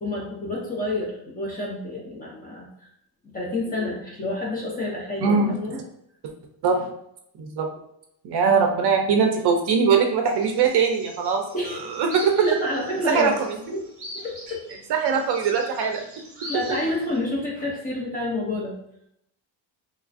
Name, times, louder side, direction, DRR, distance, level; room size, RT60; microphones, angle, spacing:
voice 1, 0.0-2.9 3.3-5.8 11.5-11.9 12.2-13.4 13.7-13.8 14.1-14.7 16.5-18.8, left 1 dB, 20° left, -4 dB, 0.5 m, -29 dB
voice 2, 5.2-5.8 6.6-6.9 7.4-7.7 8.2-12.2 13.1-13.6 14.9-16.0, right 5 dB, 55° right, 3 dB, 0.5 m, -22 dB
sound 1, 10.3-17.2, equal, 30° right, 1.0 m, -42 dB
3.1 x 2.4 x 2.4 m, 0.76 s
cardioid pair, 170°, 48 cm